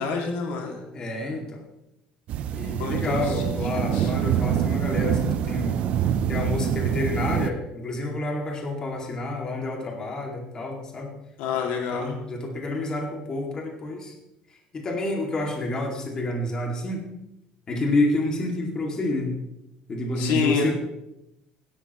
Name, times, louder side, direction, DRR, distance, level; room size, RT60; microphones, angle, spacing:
voice 1, 0.0-0.8 2.7-3.2 3.8-4.1 11.4-12.1 20.2-20.7, left 5 dB, 85° left, 2 dB, 2.4 m, -27 dB
voice 2, 0.9-1.6 2.5-5.8 6.3-11.1 11.9-14.2 14.7-17.1 17.7-19.4 19.9-20.7, left 2 dB, 25° left, 1 dB, 2.4 m, -29 dB
sound 1, 2.3-7.5, right 9 dB, 50° right, 0.6 m, -25 dB
16.0 x 11.5 x 3.1 m, 0.87 s
cardioid pair, 150°, 3 cm